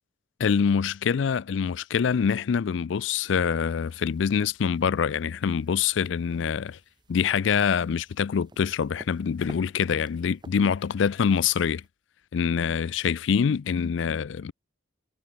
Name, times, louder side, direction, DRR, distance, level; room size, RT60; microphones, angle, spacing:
voice 1, 0.4-6.8 7.1-11.8 12.3-14.5, left 6 dB, 70° left, 0.4 m, -25 dB
sound 1, 3.7-11.9, right 2 dB, 20° right, 1.0 m, -54 dB
head